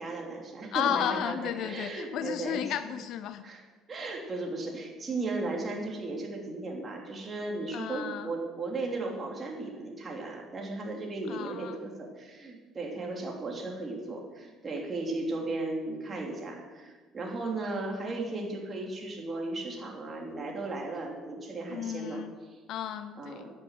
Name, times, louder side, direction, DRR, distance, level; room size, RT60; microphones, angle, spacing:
voice 1, 0.0-2.6 3.4-3.6 3.9-22.2 22.5-22.6 23.2-23.5, right 2 dB, 35° right, 0 dB, 3.3 m, -36 dB
voice 2, 0.7-3.4 7.7-8.3 11.3-11.8 21.7-22.3 22.7-23.5, left 10 dB, 70° left, 12 dB, 0.5 m, -33 dB
10.5 x 8.0 x 7.7 m, 1.3 s
supercardioid pair, 85°, 0 cm